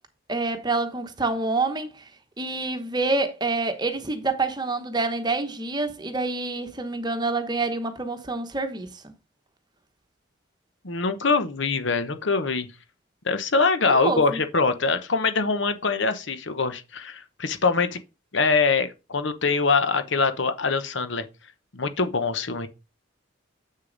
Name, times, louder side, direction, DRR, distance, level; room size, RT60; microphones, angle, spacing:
voice 1, 0.3-2.0 2.4-9.1 13.9-14.4, right 3 dB, 20° right, 1.0 m, -27 dB
voice 2, 10.8-12.7 13.2-18.0 18.3-21.2 21.7-22.7, left 4 dB, 65° left, 0.9 m, -23 dB
7.6 x 6.6 x 3.9 m
head